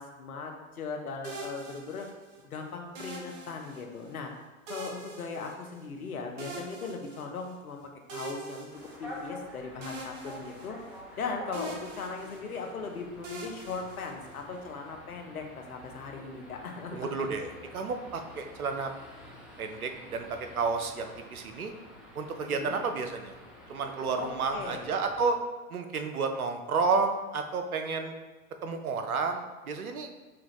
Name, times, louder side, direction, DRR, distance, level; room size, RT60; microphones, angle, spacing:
voice 1, 0.0-2.1 2.4-4.3 4.7-7.8 8.1-8.7 9.0-10.8 11.2-17.3 22.4-22.8 24.2-24.3 24.5-24.9, left 4 dB, 85° left, 3 dB, 0.8 m, -38 dB
sound 1, 1.2-2.4 3.0-4.1 4.7-6.0 6.4-7.6 8.1-9.5 9.8-11.2 11.5-12.7 13.2-14.6, right 2 dB, 60° right, 1.0 m, -43 dB
sound 2, 8.7-25.3, equal, ahead, 0.4 m, -49 dB
voice 2, 16.9-18.9 19.6-21.7 22.1-23.4 23.7-25.4 25.7-28.1 28.6-30.1, right 4 dB, 85° right, 6 dB, 0.7 m, -31 dB
6.0 x 2.4 x 3.0 m, 1.2 s
figure-of-eight pair, 100°, 42 cm